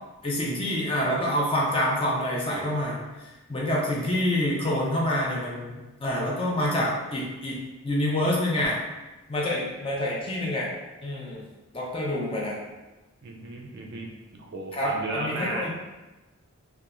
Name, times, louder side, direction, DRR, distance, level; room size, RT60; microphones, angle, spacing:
voice 1, 0.2-3.0 3.5-7.6 7.8-8.8 9.3-10.7 11.0-11.4 11.7-12.6 14.7-15.7, left 1 dB, 25° left, -4 dB, 0.4 m, -27 dB
voice 2, 13.2-15.7, right 2 dB, 50° right, 0 dB, 0.3 m, -35 dB
2.9 x 2.2 x 2.4 m, 1.1 s
head